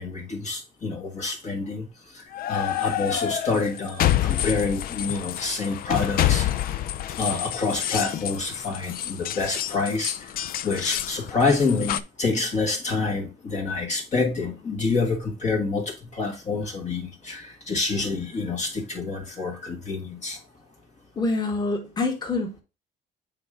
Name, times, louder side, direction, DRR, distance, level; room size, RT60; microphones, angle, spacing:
voice 1, 0.0-1.9 2.1-6.5 7.1-10.3 10.6-20.4, left 4 dB, 45° left, 1.7 m, -27 dB
sound 1, 2.3-12.0, left 12 dB, 60° left, 0.5 m, -28 dB
voice 2, 21.2-22.6, left 3 dB, 25° left, 1.7 m, -26 dB
7.6 x 3.6 x 3.6 m
cardioid pair, 110°, 17 cm